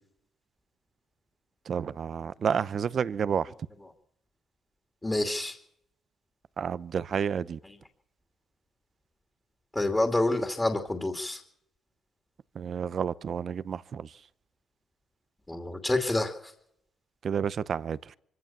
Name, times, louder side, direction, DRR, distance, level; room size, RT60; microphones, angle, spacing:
voice 1, 1.6-3.5 6.6-7.6 12.5-14.2 17.2-18.2, right 7 dB, 45° right, 0.8 m, -30 dB
voice 2, 5.0-5.6 9.7-11.4 15.5-16.5, left 2 dB, 15° left, 2.6 m, -28 dB
24.5 x 16.0 x 7.4 m
cardioid pair, 100°, 0 cm